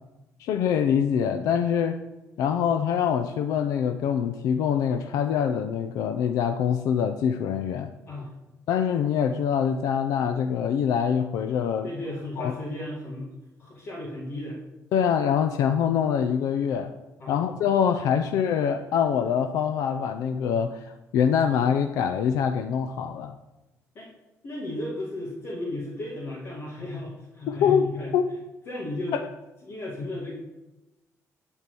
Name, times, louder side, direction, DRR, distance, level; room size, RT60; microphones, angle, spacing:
voice 1, 0.4-2.0 2.4-7.9 8.7-11.9 12.4-12.5 14.9-16.9 17.3-23.4 27.5-28.2 29.1-29.3, left 8 dB, 80° left, 7 dB, 0.6 m, -24 dB
voice 2, 11.8-13.3 13.6-14.6 17.2-17.4 23.9-24.1 24.4-28.1 28.7-29.2 29.6-30.4, left 1 dB, 40° left, -5 dB, 2.1 m, -34 dB
11.5 x 4.6 x 6.9 m, 1.0 s
cardioid pair, 170°, 6 cm